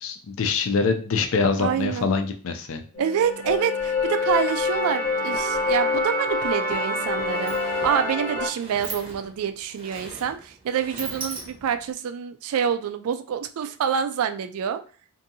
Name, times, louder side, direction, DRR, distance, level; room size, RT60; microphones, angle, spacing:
voice 1, 0.0-2.8, left 4 dB, 65° left, 6 dB, 0.4 m, -24 dB
voice 2, 1.6-2.1 3.0-14.8, right 8 dB, 75° right, 9 dB, 0.3 m, -27 dB
sound 1, 2.9-8.5, left 3 dB, 30° left, 0.7 m, -26 dB
Sliding door, 6.6-6.7 7.0-11.9, right 3 dB, 25° right, 0.6 m, -39 dB
2.7 x 2.5 x 2.7 m, 0.39 s
head